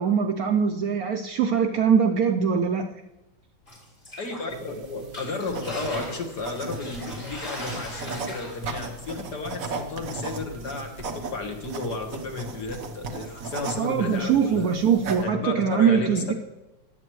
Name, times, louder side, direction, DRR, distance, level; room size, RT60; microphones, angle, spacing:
voice 1, 0.0-2.9 13.8-16.3, right 7 dB, 70° right, 5 dB, 0.9 m, -22 dB
sound 1, 3.7-4.7 5.0-8.8, left 1 dB, 30° left, 4.4 m, -39 dB
voice 2, 4.2-14.7 15.2-16.3, left 3 dB, 60° left, 2 dB, 2.0 m, -33 dB
sound 2, 4.5-15.2, right 3 dB, 50° right, 1.4 m, -37 dB
15.5 x 10.5 x 3.1 m, 0.99 s
omnidirectional pair, 2.0 m